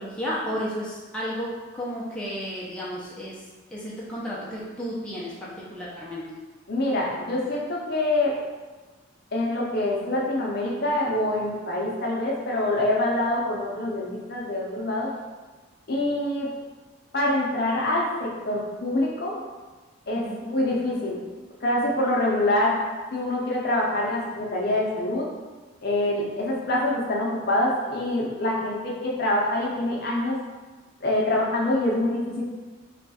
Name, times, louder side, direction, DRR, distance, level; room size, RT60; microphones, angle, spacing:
voice 1, 0.0-3.4 3.7-6.2 20.1-20.4, equal, 5° left, -8 dB, 0.5 m, -33 dB
voice 2, 6.7-8.4 9.3-15.1 15.9-16.5 17.1-19.4 20.1-21.2 21.6-22.8 23.1-25.3 25.8-30.4 31.0-32.4, left 1 dB, 50° left, -3 dB, 0.6 m, -25 dB
3.3 x 2.3 x 4.0 m, 1.3 s
head